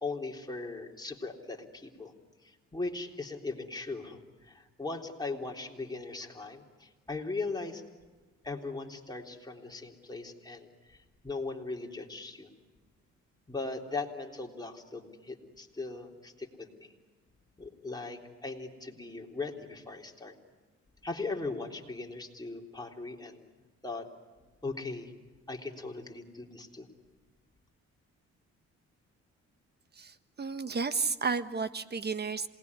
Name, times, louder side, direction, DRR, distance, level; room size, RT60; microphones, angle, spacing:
voice 1, 0.0-2.1 2.4-7.8 8.4-10.7 11.2-12.5 13.5-16.9 17.6-20.3 21.0-23.5 23.8-24.1 24.6-25.1 25.5-26.9, left 3 dB, 15° left, 0 dB, 3.6 m, -39 dB
voice 2, 30.0-32.5, right 5 dB, 35° right, 12 dB, 1.4 m, -32 dB
27.0 x 20.0 x 9.8 m, 1.3 s
cardioid pair, 90°, 30 cm